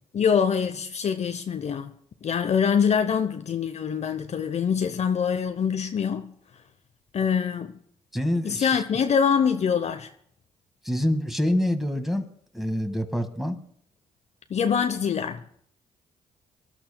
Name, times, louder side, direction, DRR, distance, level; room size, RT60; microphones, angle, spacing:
voice 1, 0.1-1.9 2.2-6.3 7.1-7.7 8.4-10.1 14.5-15.4, left 7 dB, 50° left, 0.7 m, -24 dB
voice 2, 8.1-8.8 10.8-12.3 12.5-13.6, left 1 dB, ahead, 1.8 m, -26 dB
24.5 x 12.0 x 2.2 m
supercardioid pair, 55°, 15 cm